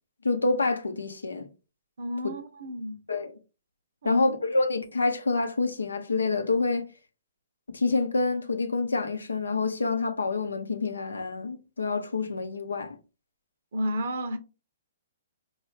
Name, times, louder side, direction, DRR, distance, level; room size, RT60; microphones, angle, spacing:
voice 1, 0.2-1.5 3.1-3.3 4.0-6.9 7.7-13.0, left 3 dB, 80° left, 0.7 m, -27 dB
voice 2, 2.0-3.0 4.0-4.3 13.7-14.4, equal, 60° right, 0.7 m, -31 dB
4.4 x 2.4 x 3.1 m
figure-of-eight pair, 125°, 0 cm